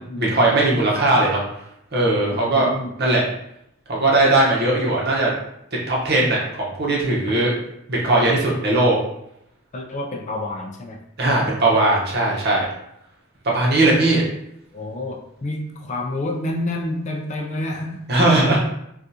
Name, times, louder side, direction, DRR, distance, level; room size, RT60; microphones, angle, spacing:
voice 1, 0.0-1.4 1.9-2.7 3.0-3.2 3.9-5.3 5.9-7.5 7.9-9.0 11.2-12.6 13.4-14.2 18.1-18.6, right 2 dB, 50° right, -4 dB, 0.9 m, -18 dB
voice 2, 2.3-2.9 9.7-11.0 11.4-11.5 14.7-18.0, left 1 dB, 35° left, 1 dB, 0.3 m, -29 dB
3.5 x 2.4 x 2.7 m, 0.78 s
head